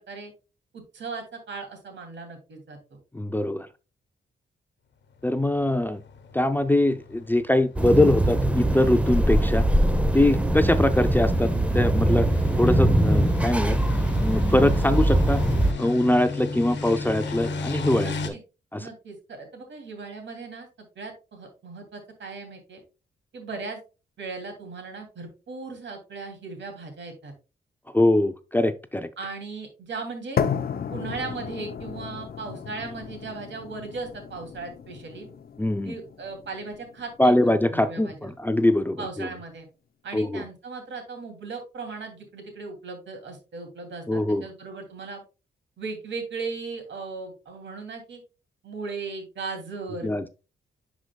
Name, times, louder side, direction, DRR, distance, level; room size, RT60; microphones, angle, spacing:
voice 1, 0.7-3.0 18.0-18.4 18.8-20.7 21.0-22.8 23.3-23.8 24.2-27.3 29.2-30.4 30.9-35.3 35.8-38.3 39.0-39.7 40.0-45.2 45.8-48.2 48.6-50.1, right 4 dB, 70° right, 4 dB, 2.8 m, -37 dB
voice 2, 3.1-3.7 5.2-6.0 6.3-9.6 10.1-12.3 12.6-13.8 14.2-15.4 15.8-18.3 18.7-18.9 27.9-29.1 35.6-35.9 37.2-39.3 40.1-40.4 44.1-44.5 50.0-50.3, left 1 dB, 10° left, 10 dB, 0.5 m, -23 dB
sound 1, 5.4-18.3, left 4 dB, 70° left, 1.1 m, -36 dB
sound 2, 7.8-15.7, right 1 dB, 5° right, 0.9 m, -22 dB
sound 3, 30.4-38.4, left 7 dB, 50° left, 0.7 m, -34 dB
10.0 x 4.9 x 2.3 m, 0.30 s
cardioid pair, 80°, 20 cm